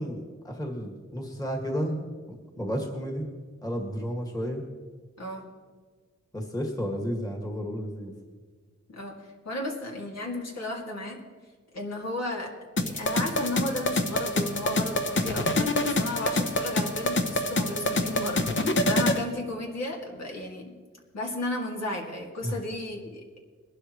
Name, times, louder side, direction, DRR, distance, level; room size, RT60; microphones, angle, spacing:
voice 1, 0.0-3.2 3.6-4.7 6.3-8.1 22.4-22.6, equal, 10° left, 1 dB, 2.0 m, -32 dB
voice 2, 9.4-11.2 11.7-12.5 12.8-20.7 21.1-23.4, left 1 dB, 60° left, -1 dB, 2.4 m, -34 dB
sound 1, 12.8-19.2, left 1 dB, 40° left, 0.9 m, -26 dB
22.0 x 12.0 x 3.1 m, 1.5 s
wide cardioid pair, 120°, 29 cm